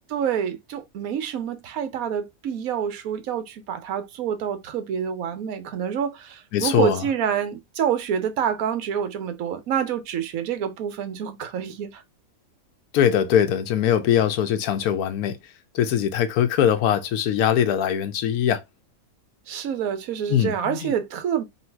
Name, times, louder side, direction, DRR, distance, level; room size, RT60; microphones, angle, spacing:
voice 1, 0.1-12.0 19.5-21.4, right 8 dB, 70° right, 1.2 m, -27 dB
voice 2, 6.5-7.0 12.9-15.4 15.7-18.6 20.3-20.9, left 9 dB, 85° left, 1.1 m, -21 dB
3.1 x 2.7 x 4.4 m
omnidirectional pair, 1.6 m